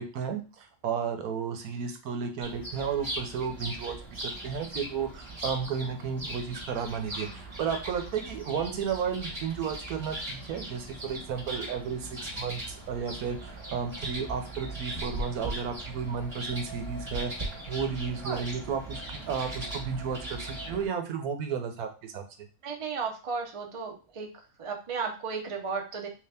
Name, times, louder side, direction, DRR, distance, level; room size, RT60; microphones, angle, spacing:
voice 1, 0.0-17.3 17.7-22.2, right 6 dB, 85° right, 6 dB, 1.2 m, -33 dB
sound 1, 2.4-20.9, right 1 dB, 20° right, 1.0 m, -39 dB
voice 2, 22.6-24.3 24.6-26.1, right 5 dB, 50° right, 2 dB, 0.4 m, -34 dB
3.2 x 2.8 x 3.3 m, 0.34 s
omnidirectional pair, 1.5 m